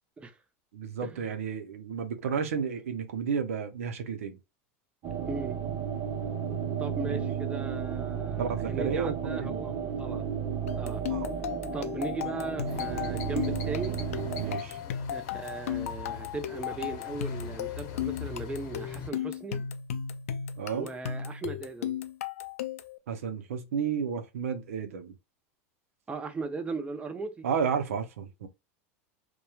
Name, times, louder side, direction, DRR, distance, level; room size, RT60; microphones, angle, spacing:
voice 1, 0.7-4.4 7.1-7.2 8.4-9.7 11.1-11.3 14.4-14.8 20.6-20.9 23.1-25.1 27.4-28.5, right 6 dB, 90° right, 0.6 m, -32 dB
sound 1, 5.0-14.6, right 7 dB, 45° right, 0.9 m, -33 dB
voice 2, 5.3-5.6 6.8-10.2 10.8-11.0 11.7-14.0 15.1-19.6 20.7-22.0 26.1-27.5, right 3 dB, 15° right, 0.5 m, -37 dB
sound 2, 10.7-23.0, left 9 dB, 90° left, 0.4 m, -35 dB
sound 3, 12.6-19.1, left 8 dB, 55° left, 0.8 m, -42 dB
2.8 x 2.2 x 2.3 m
supercardioid pair, 105°, 7 cm